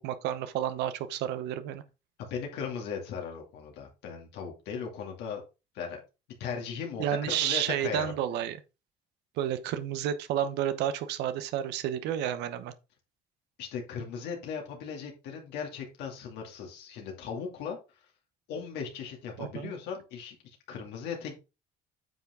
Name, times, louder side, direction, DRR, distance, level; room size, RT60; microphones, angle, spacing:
voice 1, 0.0-1.8 7.0-8.6 9.4-12.7 19.4-19.7, right 10 dB, 90° right, 1.0 m, -31 dB
voice 2, 2.2-5.4 5.7-6.0 6.4-8.1 13.6-17.8 18.5-21.3, left 6 dB, 85° left, 2.5 m, -37 dB
9.0 x 5.9 x 3.7 m
cardioid pair, 110°, 17 cm